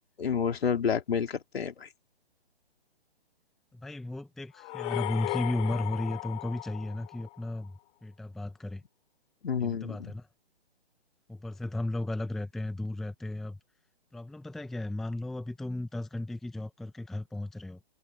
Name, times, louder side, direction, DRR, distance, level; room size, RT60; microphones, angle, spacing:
voice 1, 0.2-1.9 9.4-10.1, left 7 dB, 70° left, 3.8 m, -29 dB
voice 2, 3.7-8.8 9.6-10.3 11.3-13.6 14.1-17.8, left 2 dB, ahead, 0.7 m, -35 dB
sound 1, 4.6-7.6, left 21 dB, 20° left, 4.7 m, -36 dB
hypercardioid pair, 155°, 32 cm